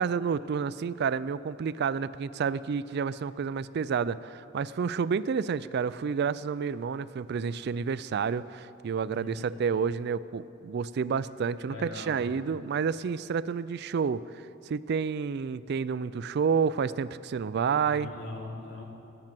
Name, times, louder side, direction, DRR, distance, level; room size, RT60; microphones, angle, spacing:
voice 1, 0.0-14.2 14.7-18.1, right 6 dB, 55° right, 17 dB, 0.3 m, -29 dB
voice 2, 11.6-12.2 17.9-18.8, left 2 dB, 65° left, -2 dB, 3.0 m, -40 dB
19.0 x 7.8 x 7.5 m, 2.7 s
head